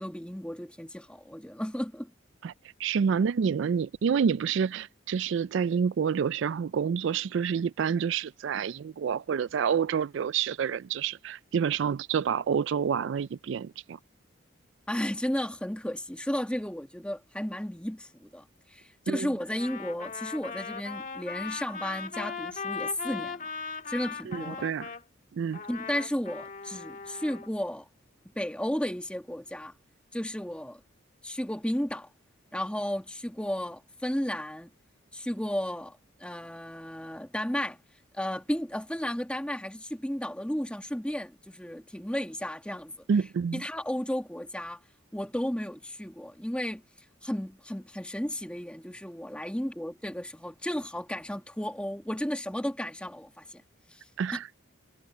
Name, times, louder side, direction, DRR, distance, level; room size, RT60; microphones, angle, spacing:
voice 1, 0.0-2.1 14.9-23.4 23.9-24.6 25.7-27.9 28.3-29.7 30.1-30.8 31.2-32.1 32.5-34.7 35.1-37.8 38.1-42.9 43.5-44.8 45.1-46.8 47.2-53.6 53.9-54.0, equal, 5° left, 1.7 m, -33 dB
voice 2, 2.8-14.0 19.1-19.3 24.2-24.9 25.3-25.6 43.1-43.6 54.2-54.5, right 7 dB, 65° right, 0.3 m, -28 dB
Trumpet, 19.5-25.0 25.5-27.5, left 5 dB, 40° left, 1.7 m, -38 dB
head